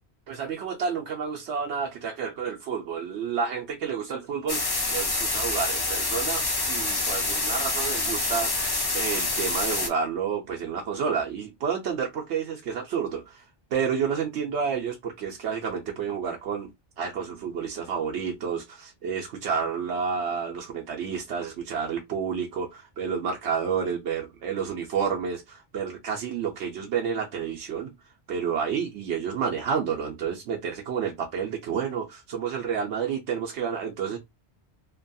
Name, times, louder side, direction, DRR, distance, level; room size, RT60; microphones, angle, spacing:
voice 1, 0.3-4.6 4.9-13.5 13.7-16.7 17.0-27.9 28.3-34.2, right 6 dB, 80° right, 0.9 m, -30 dB
sound 1, 4.5-9.9, left 2 dB, 30° left, 0.4 m, -27 dB
2.8 x 2.3 x 2.5 m
omnidirectional pair, 1.1 m